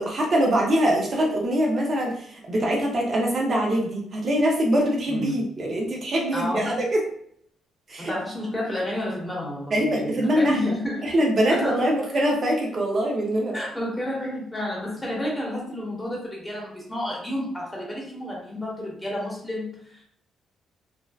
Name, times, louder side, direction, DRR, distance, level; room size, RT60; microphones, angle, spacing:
voice 1, 0.0-7.0 7.9-8.1 9.7-10.7 11.0-13.6, equal, 45° right, -1 dB, 0.6 m, -23 dB
voice 2, 6.3-6.7 8.0-11.1 11.5-11.9 13.5-20.0, left 1 dB, 15° left, -3 dB, 0.9 m, -30 dB
2.6 x 2.1 x 2.3 m, 0.65 s
cardioid pair, 90°, 0 cm